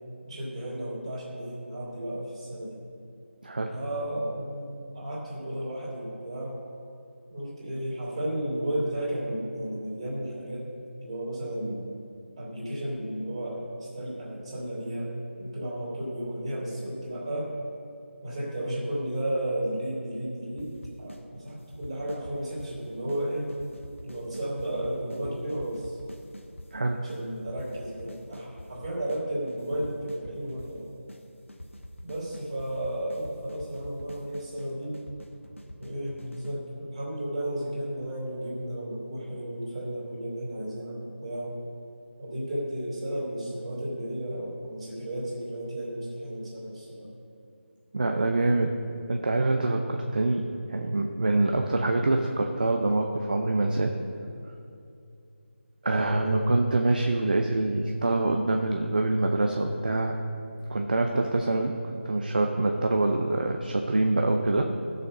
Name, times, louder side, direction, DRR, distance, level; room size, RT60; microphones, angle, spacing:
voice 1, 0.3-2.8 3.7-6.6 7.3-10.7 11.0-11.9 12.4-17.5 18.2-23.5 24.0-26.0 27.0-30.9 32.0-35.0 35.8-41.6 42.2-47.1 55.9-56.5, right 1 dB, 25° right, -5 dB, 3.2 m, -33 dB
voice 2, 3.4-3.7 26.7-27.0 47.9-48.7 49.1-50.4 50.7-53.9 55.8-60.2 60.7-64.7, right 2 dB, 45° right, 3 dB, 0.7 m, -25 dB
sound 1, 20.6-21.2 21.5-22.8 23.1-23.2 23.5-26.7 27.1-27.2 27.5-29.2 29.5-30.8 31.1-31.2 31.5-36.6, left 1 dB, 80° left, 1.4 m, -45 dB
14.5 x 6.8 x 5.4 m, 2.6 s
figure-of-eight pair, 160°, 7 cm